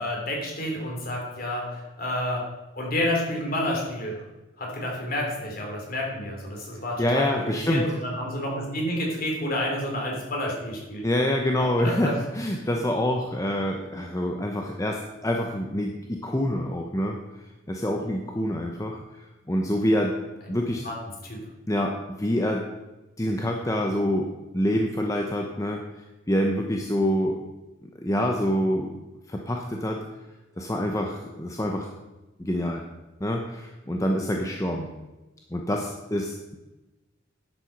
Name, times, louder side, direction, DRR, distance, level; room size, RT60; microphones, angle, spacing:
voice 1, 0.0-2.4 2.8-4.2 4.6-11.0 11.8-12.1 20.5-20.6 20.8-21.0 21.2-21.4, left 1 dB, 45° left, -1 dB, 3.5 m, -29 dB
voice 2, 7.0-7.9 11.0-17.2 17.7-20.2 20.5-20.8 21.7-22.6 23.2-24.3 24.5-25.8 26.3-27.4 28.0-28.9 29.3-30.0 30.6-31.9 32.4-32.8 33.2-34.9 35.5-36.3, equal, 15° left, 1 dB, 0.8 m, -26 dB
10.5 x 7.8 x 5.9 m, 1.1 s
head